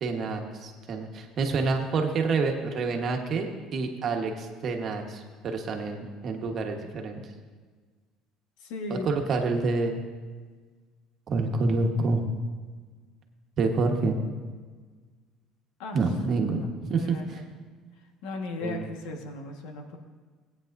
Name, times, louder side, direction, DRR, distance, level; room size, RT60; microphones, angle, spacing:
voice 1, 0.0-7.2 9.0-10.0 11.3-12.2 13.6-14.2 15.9-16.6 16.9-17.4 18.6-18.9, right 3 dB, 40° right, 3 dB, 1.3 m, -28 dB
voice 2, 8.6-9.1 15.8-17.4 18.2-20.0, left 2 dB, 85° left, 3 dB, 1.5 m, -37 dB
18.0 x 9.0 x 2.6 m, 1.5 s
cardioid pair, 135°, 0 cm